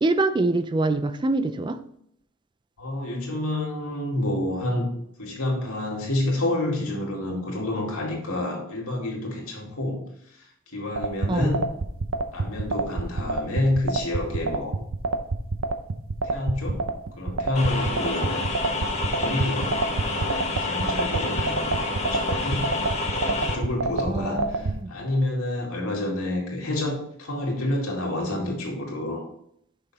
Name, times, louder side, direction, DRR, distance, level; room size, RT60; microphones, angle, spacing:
voice 1, 0.0-1.8 11.3-11.5 24.1-24.9, right 2 dB, 20° right, 11 dB, 0.4 m, -25 dB
voice 2, 2.8-4.9 5.2-10.0 10.3-11.7 12.3-14.8 16.2-16.8 17.2-18.4 19.2-22.7 23.2-29.2, left 1 dB, 75° left, -1 dB, 2.2 m, -29 dB
sound 1, 11.0-24.7, right 3 dB, 60° right, 0.6 m, -26 dB
sound 2, 17.5-23.5, left 2 dB, 30° left, 1.2 m, -28 dB
6.7 x 5.7 x 4.2 m, 0.71 s
head